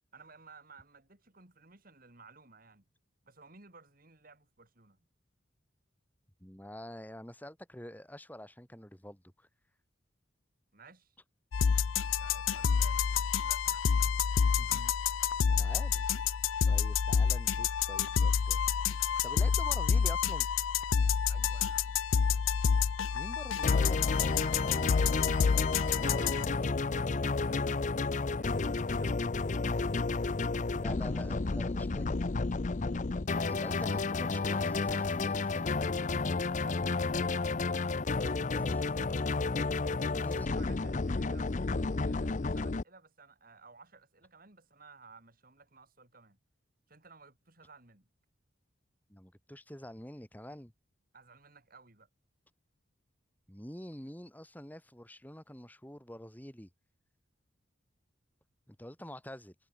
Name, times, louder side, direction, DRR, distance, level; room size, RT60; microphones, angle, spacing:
voice 1, 0.1-2.8 3.2-5.0 10.7-11.2 12.2-13.8 14.5-14.6 21.3-22.0 26.7-30.3 33.9-34.0 40.0-46.4 46.9-48.1 51.1-52.1, right 4 dB, 45° right, 3.0 m, -57 dB
voice 2, 6.4-9.5 14.6-14.9 15.5-16.2 16.7-18.6 19.2-20.5 23.1-24.9 30.7-32.1 33.3-35.7 38.2-39.0 40.1-40.5 49.1-50.7 53.5-56.7 58.7-59.5, equal, 10° left, 2.6 m, -47 dB
sound 1, 11.5-26.5, left 6 dB, 85° left, 0.5 m, -28 dB
sound 2, 23.6-42.8, left 3 dB, 40° left, 0.6 m, -31 dB
head